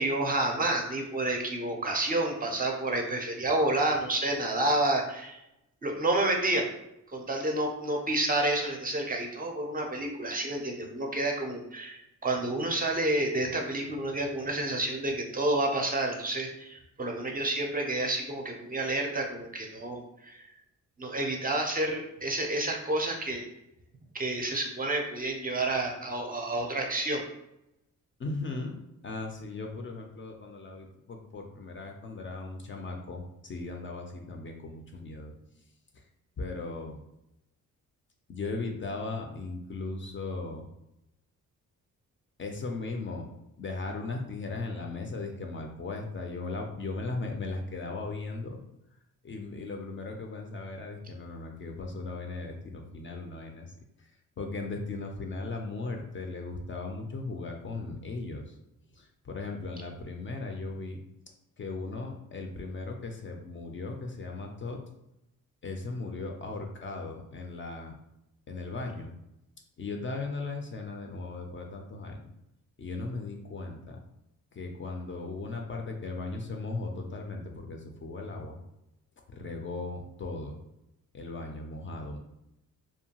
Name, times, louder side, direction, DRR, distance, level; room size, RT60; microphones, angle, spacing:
voice 1, 0.0-5.4 5.8-6.7 7.1-20.5 21.0-23.5 24.1-27.2, right 2 dB, 25° right, 1 dB, 0.4 m, -29 dB
voice 2, 28.2-35.6 35.9-36.1 36.4-37.0 38.3-40.6 42.4-43.3 43.6-48.6 49.2-58.6 58.9-61.0 61.6-64.8 65.6-68.0 68.5-69.1 69.8-72.3 72.8-74.0 74.5-78.6 79.3-80.6 81.1-82.2, left 3 dB, 40° left, 2 dB, 0.4 m, -37 dB
2.7 x 2.2 x 2.8 m, 0.85 s
cardioid pair, 95°, 33 cm